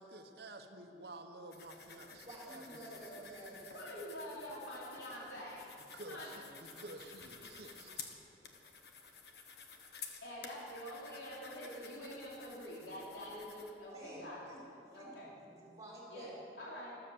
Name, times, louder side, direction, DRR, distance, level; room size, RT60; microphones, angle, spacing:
voice 1, 0.0-3.3 5.9-6.3 6.6-7.9 9.0-9.1 12.0-12.1, right 2 dB, 60° right, 5 dB, 1.2 m, -51 dB
sound 1, 1.5-13.7, left 5 dB, 65° left, 1.4 m, -53 dB
voice 2, 2.2-3.9 13.9-14.6 14.9-16.4, right 1 dB, 20° right, -4 dB, 4.9 m, -51 dB
voice 3, 3.7-5.7 6.1-6.5 10.2-14.5 14.9-15.3 16.1-17.0, equal, 85° left, -6 dB, 3.7 m, -46 dB
13.5 x 13.5 x 7.2 m, 2.7 s
head